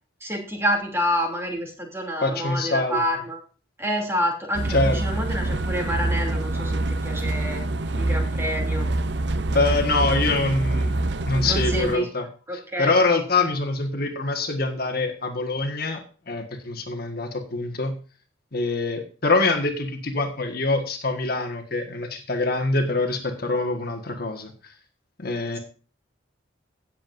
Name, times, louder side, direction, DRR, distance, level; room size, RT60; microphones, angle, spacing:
voice 1, 0.2-3.4 3.8-7.6 8.0-8.9 11.4-12.1 12.5-13.0, equal, 10° right, 1 dB, 2.8 m, -28 dB
voice 2, 2.2-3.0 4.7-5.2 9.5-10.9 11.3-12.2 12.8-17.9 18.5-24.5 25.2-25.6, left 3 dB, 50° left, 4 dB, 1.6 m, -24 dB
sound 1, 4.5-12.0, right 2 dB, 60° right, 0.7 m, -25 dB
17.0 x 7.6 x 2.6 m, 0.38 s
head